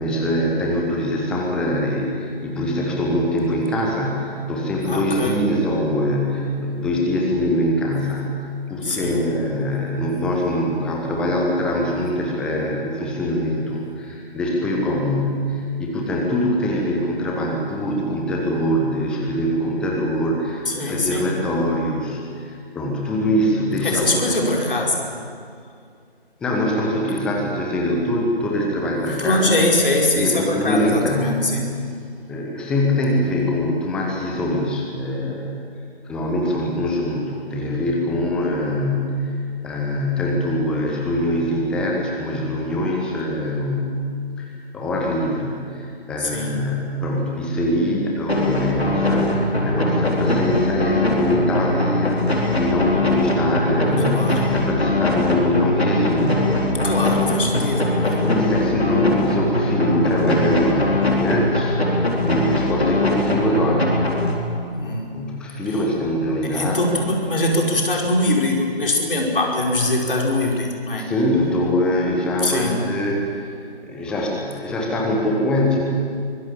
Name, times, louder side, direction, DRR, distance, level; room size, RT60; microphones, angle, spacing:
voice 1, 0.0-8.4 8.7-24.4 26.4-29.6 30.1-31.5 32.3-35.5 36.0-39.4 39.6-44.0 44.4-44.5 44.7-56.5 58.2-63.9 65.1-66.9 71.0-73.2 73.8-75.8, left 1 dB, 5° left, -1 dB, 1.1 m, -23 dB
voice 2, 4.8-5.5 8.8-9.2 20.7-21.3 23.8-25.1 29.2-31.7 46.2-46.6 54.1-54.5 56.8-58.2 64.8-65.1 66.4-71.1 72.4-72.9, left 1 dB, 55° left, 0 dB, 5.3 m, -22 dB
sound 1, 48.3-64.8, left 1 dB, 75° left, 4.5 m, -21 dB
24.5 x 20.0 x 7.4 m, 2.3 s
figure-of-eight pair, 150°, 32 cm